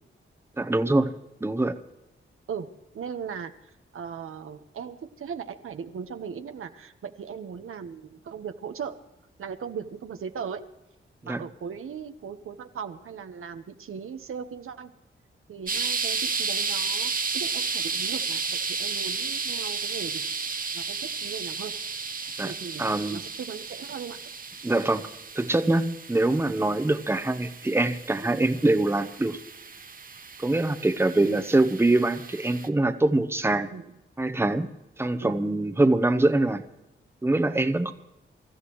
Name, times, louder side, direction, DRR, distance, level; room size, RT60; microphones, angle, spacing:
voice 1, 0.6-1.1 1.4-1.8 11.2-11.4 22.4-22.5 22.8-23.2 24.6-25.0 25.3-29.4 30.4-33.7 34.2-34.7 35.0-36.6 37.2-37.9, right 2 dB, 10° right, 9 dB, 0.9 m, -24 dB
voice 2, 2.9-3.5 3.9-9.0 9.4-10.6 11.2-14.9 15.5-20.2 20.7-21.7 22.4-24.2 31.2-31.4 33.7-33.8 35.2-35.4, right 7 dB, 85° right, 7 dB, 1.1 m, -38 dB
sound 1, 15.7-32.7, right 5 dB, 40° right, 1.0 m, -33 dB
25.0 x 14.0 x 3.1 m, 0.93 s
wide cardioid pair, 95°, 21 cm